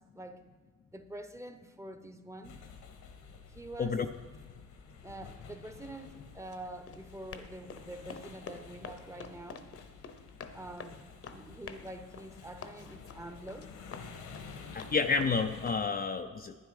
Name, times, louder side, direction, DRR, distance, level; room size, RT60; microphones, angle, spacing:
voice 1, 0.1-0.5 0.9-2.6 3.5-4.0 5.0-9.7 10.5-11.0 11.3-13.7, right 1 dB, 10° right, 8 dB, 0.9 m, -46 dB
sound 1, 2.4-15.7, left 5 dB, 80° left, 1.5 m, -51 dB
Run, 5.3-15.9, left 5 dB, 50° left, 1.0 m, -49 dB
voice 2, 14.7-16.5, left 5 dB, 30° left, 5 dB, 0.6 m, -30 dB
12.0 x 9.3 x 4.9 m, 1.4 s
cardioid pair, 90°, 30 cm